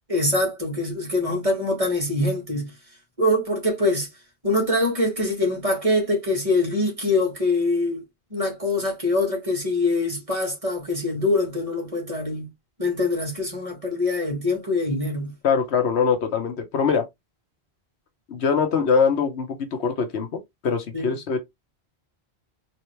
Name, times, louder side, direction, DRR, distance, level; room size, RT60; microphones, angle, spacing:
voice 1, 0.1-2.7 3.2-4.1 4.4-8.0 8.3-12.5 12.8-15.3 20.9-21.1, left 2 dB, 30° right, 2.0 m, -24 dB
voice 2, 15.4-17.1 18.3-21.4, left 6 dB, 85° left, 1.2 m, -23 dB
4.0 x 2.9 x 3.1 m
omnidirectional pair, 1.1 m